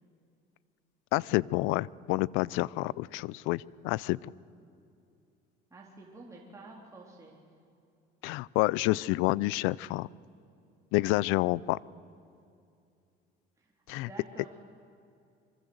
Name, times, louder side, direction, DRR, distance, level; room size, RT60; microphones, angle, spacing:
voice 1, 1.1-4.2 8.2-10.1 10.9-11.8 13.9-14.1, left 19 dB, 80° left, 23 dB, 0.6 m, -28 dB
voice 2, 5.7-7.3 13.6-13.7 14.0-14.6, right 2 dB, 15° right, -3 dB, 3.8 m, -49 dB
25.0 x 24.5 x 8.0 m, 2.5 s
cardioid pair, 115°, 20 cm